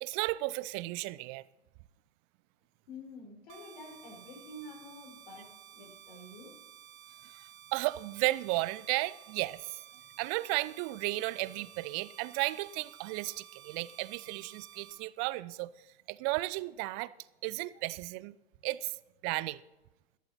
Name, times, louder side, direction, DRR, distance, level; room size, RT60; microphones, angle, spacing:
voice 1, 0.0-1.4 7.3-7.4 7.7-9.8 10.2-15.7 16.1-17.1 17.4-18.3 18.6-19.0 19.2-19.6, right 20 dB, 30° right, 0.4 m, -34 dB
voice 2, 2.9-6.6, left 1 dB, 55° left, 4.8 m, -49 dB
sound 1, 3.5-14.9, right 10 dB, 45° right, 1.6 m, -54 dB
21.5 x 7.9 x 4.3 m
figure-of-eight pair, 95°, 31 cm